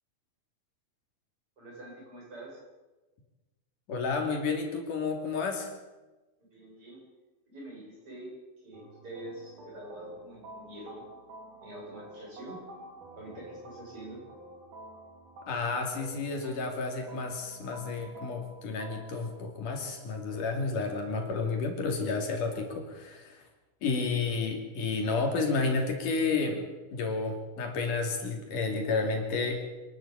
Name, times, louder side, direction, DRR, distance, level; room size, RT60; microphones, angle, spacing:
voice 1, 1.6-2.6 6.5-7.0 7.5-8.3 8.6-11.0 11.6-12.6 13.1-14.2, right 1 dB, 40° right, -4 dB, 8.8 m, -45 dB
voice 2, 3.9-5.7 15.5-23.4 23.8-29.6, left 4 dB, 75° left, 3 dB, 4.3 m, -31 dB
sound 1, 8.7-21.7, right 1 dB, 70° right, 4.8 m, -50 dB
25.5 x 12.5 x 8.7 m, 1.2 s
omnidirectional pair, 3.8 m